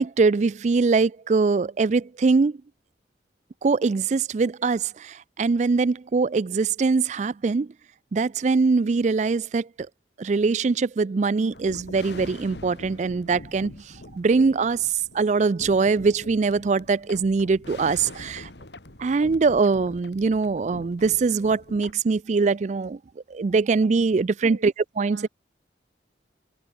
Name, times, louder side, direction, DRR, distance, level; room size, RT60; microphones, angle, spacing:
voice 1, 0.0-2.6 3.6-7.7 8.1-9.7 10.2-18.5 19.0-23.0 23.3-24.7 25.0-25.3, right 4 dB, 40° right, 0.4 m, -22 dB
sound 1, 11.5-21.9, left 1 dB, 70° left, 3.0 m, -43 dB
voice 2, 24.4-24.7 25.0-25.3, right 1 dB, 75° right, 5.7 m, -42 dB
head